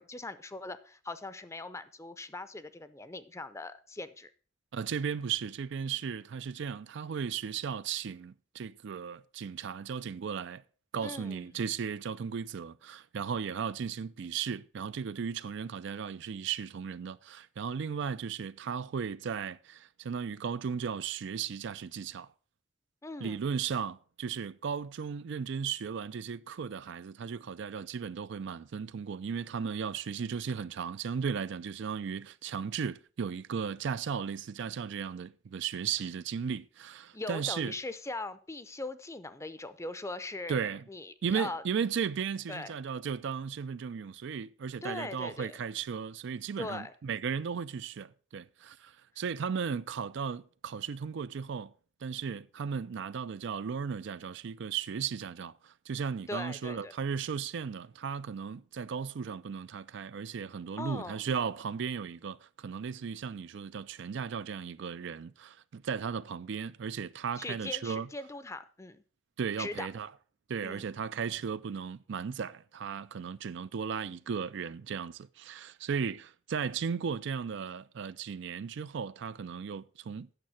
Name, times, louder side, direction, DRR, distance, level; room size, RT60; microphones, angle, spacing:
voice 1, 0.0-4.3 11.0-11.6 23.0-23.4 37.1-41.6 42.5-42.7 44.8-45.6 46.6-46.9 56.3-56.9 60.8-61.2 67.4-69.0 69.6-69.9 70.6-70.9, left 2 dB, 15° left, 0.6 m, -40 dB
voice 2, 4.7-10.6 10.9-22.3 23.2-37.7 40.5-40.8 41.2-51.7 52.0-68.1 69.4-70.1 70.5-80.3, right 6 dB, 65° right, 0.4 m, -36 dB
9.0 x 6.7 x 5.6 m
head